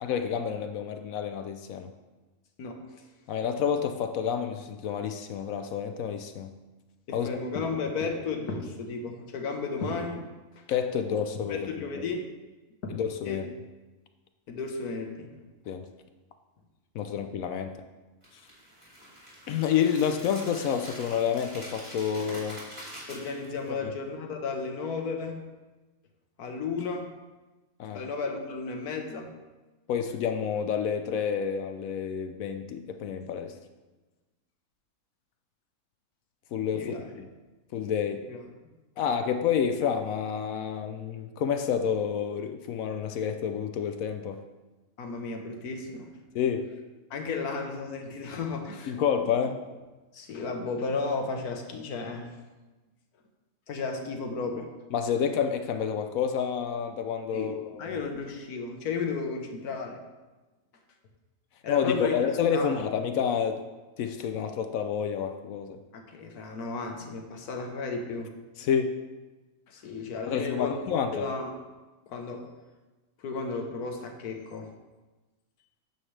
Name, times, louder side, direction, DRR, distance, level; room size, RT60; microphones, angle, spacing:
voice 1, 0.0-1.9 3.3-6.5 7.1-7.3 10.7-11.7 12.9-13.5 15.7-15.8 16.9-17.7 19.5-22.6 27.8-28.0 29.9-33.5 36.5-37.3 37.7-38.2 39.0-44.4 46.3-46.7 48.9-49.6 54.9-58.0 61.7-63.6 64.0-65.8 68.6-69.0 70.3-71.3, left 7 dB, 70° left, 7 dB, 0.9 m, -29 dB
voice 2, 7.1-10.2 10.6-10.7 11.5-12.2 12.8-12.9 13.2-13.4 14.5-15.3 23.1-25.4 26.4-27.1 27.9-29.3 36.7-37.1 38.3-38.4 45.0-46.1 47.1-49.0 50.1-52.3 53.7-54.7 57.3-60.0 61.6-62.1 62.5-62.7 65.9-68.3 69.7-70.7 71.1-71.5 72.1-72.5 73.2-74.7, left 4 dB, 90° left, 4 dB, 1.5 m, -33 dB
sound 1, 18.2-23.7, equal, 20° right, 2.8 m, -45 dB
9.2 x 7.2 x 3.2 m, 1.2 s
omnidirectional pair, 1.6 m